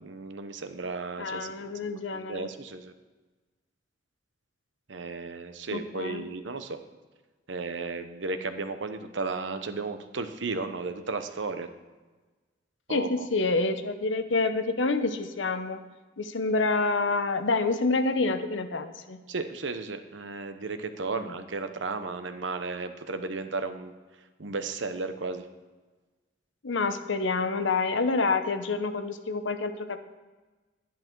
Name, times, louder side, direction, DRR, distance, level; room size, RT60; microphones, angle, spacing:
voice 1, 0.0-2.9 4.9-6.8 7.5-11.7 12.9-13.3 19.3-23.9 24.4-25.4, right 3 dB, 80° right, 9 dB, 0.9 m, -34 dB
voice 2, 1.2-2.5 5.7-6.2 12.9-15.8 16.2-19.2 21.1-21.2 26.6-30.0, left 3 dB, 85° left, 9 dB, 0.8 m, -28 dB
11.5 x 10.5 x 4.6 m, 1.3 s
head